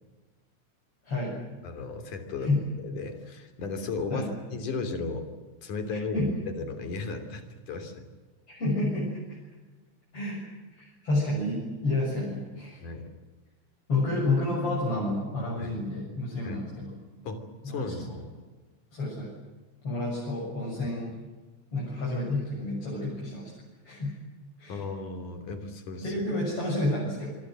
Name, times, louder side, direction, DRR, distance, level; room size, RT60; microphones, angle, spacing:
voice 1, 1.6-2.5 2.9-5.3 5.6-8.0 12.8-13.1 15.6-15.7 16.4-16.6 17.2-18.3 24.7-26.1, left 3 dB, 85° left, 7 dB, 4.7 m, -35 dB
voice 2, 8.5-9.2 10.1-10.4 10.7-12.8 13.9-17.0 17.6-18.2 18.9-19.3 19.8-21.1 21.7-23.5 23.8-24.2 24.6-24.8 26.0-27.3, left 2 dB, 45° left, -5 dB, 7.9 m, -30 dB
27.0 x 23.0 x 7.7 m, 1.3 s
omnidirectional pair, 3.5 m